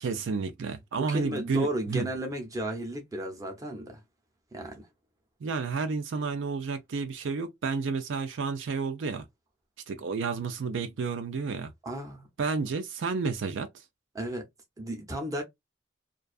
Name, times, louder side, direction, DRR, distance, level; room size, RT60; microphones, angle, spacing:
voice 1, 0.0-2.1 5.4-9.2 9.9-11.7 12.4-13.7, right 4 dB, 70° right, 0.4 m, -31 dB
voice 2, 0.9-4.0 4.5-4.9 11.8-12.3 14.1-14.5 14.8-15.4, right 1 dB, 15° right, 0.7 m, -34 dB
2.5 x 2.3 x 2.3 m
head